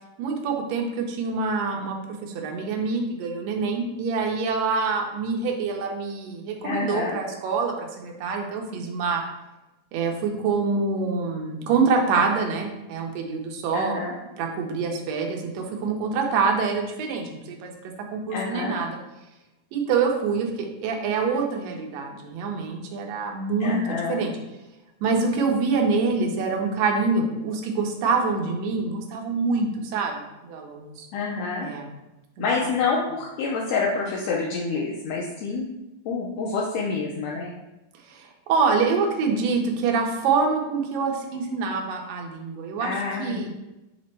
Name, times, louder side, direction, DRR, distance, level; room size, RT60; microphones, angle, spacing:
voice 1, 0.2-9.2 9.9-14.0 14.4-17.7 18.1-19.0 19.7-24.3 25.0-31.1 31.6-31.9 32.4-32.5 38.1-43.5, right 4 dB, 75° right, 1 dB, 1.7 m, -26 dB
voice 2, 6.6-7.2 13.7-14.1 18.3-18.8 23.6-24.2 31.1-31.7 32.4-35.7 36.0-37.5 42.8-43.5, left 4 dB, 85° left, -3 dB, 1.6 m, -27 dB
6.0 x 2.1 x 4.2 m, 0.99 s
omnidirectional pair, 3.6 m